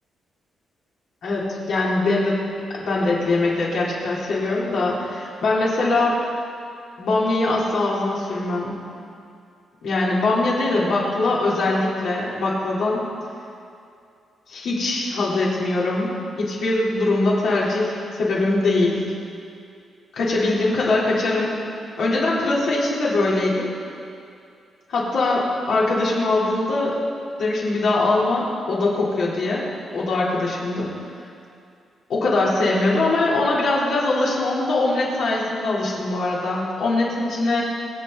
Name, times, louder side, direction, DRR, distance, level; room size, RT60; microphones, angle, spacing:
voice 1, 1.2-6.2 7.0-8.8 9.8-13.1 14.5-19.1 20.1-21.5 22.0-23.7 24.9-27.0 27.4-29.7 29.9-30.9 32.1-37.6, left 2 dB, 70° left, -6 dB, 3.9 m, -22 dB
25.0 x 8.3 x 4.2 m, 2.5 s
cardioid pair, 135°, 0 cm